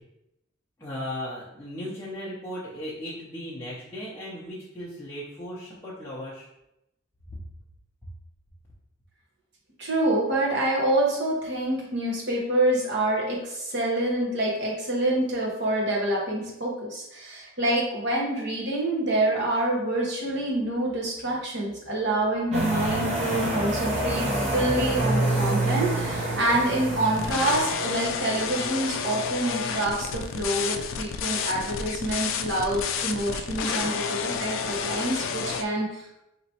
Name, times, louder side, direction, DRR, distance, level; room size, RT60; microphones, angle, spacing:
voice 1, 0.8-6.5, equal, 10° left, -9 dB, 0.6 m, -36 dB
voice 2, 9.8-24.2 24.5-36.2, right 1 dB, 55° right, -3 dB, 1.0 m, -26 dB
sound 1, 22.5-28.0, right 1 dB, 35° right, 0.7 m, -27 dB
sound 2, 27.1-35.6, left 6 dB, 70° left, 0.3 m, -30 dB
4.4 x 3.0 x 2.8 m, 0.87 s
head